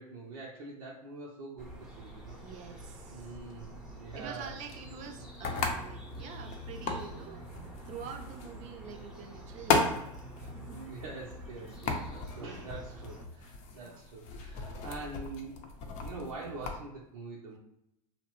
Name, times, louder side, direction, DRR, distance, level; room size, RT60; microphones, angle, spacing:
voice 1, 0.0-1.7 2.0-2.4 3.1-4.5 10.7-15.6 16.0-17.6, right 3 dB, 85° right, -4 dB, 0.6 m, -44 dB
sound 1, 1.6-13.2, right 1 dB, 5° right, 0.7 m, -47 dB
voice 2, 2.4-3.4 4.2-7.4 7.8-10.1 10.4-10.8 11.7-11.9 13.7-14.0, right 6 dB, 40° right, 4 dB, 0.5 m, -46 dB
sound 2, 4.3-16.8, left 4 dB, 40° left, 0.6 m, -37 dB
2.8 x 2.1 x 3.0 m, 0.81 s
hypercardioid pair, 100°, 18 cm